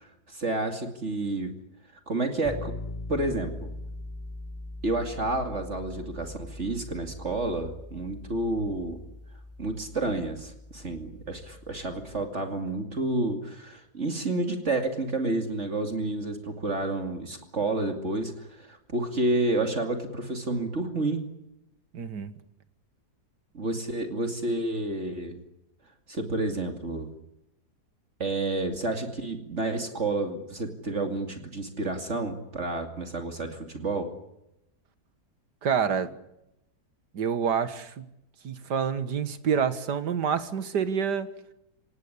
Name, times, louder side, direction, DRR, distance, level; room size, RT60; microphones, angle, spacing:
voice 1, 0.0-1.5 2.1-2.7 3.1-3.7 4.8-9.0 9.6-21.2 23.5-25.4 26.1-27.1 28.2-34.1, right 2 dB, 45° right, 6 dB, 2.7 m, -30 dB
sound 1, 2.4-12.3, left 2 dB, 10° right, 5.9 m, -41 dB
voice 2, 21.9-22.3 35.6-36.1 37.1-38.0 38.4-41.3, right 7 dB, 90° right, 12 dB, 2.1 m, -27 dB
25.5 x 18.5 x 10.0 m, 0.86 s
omnidirectional pair, 1.7 m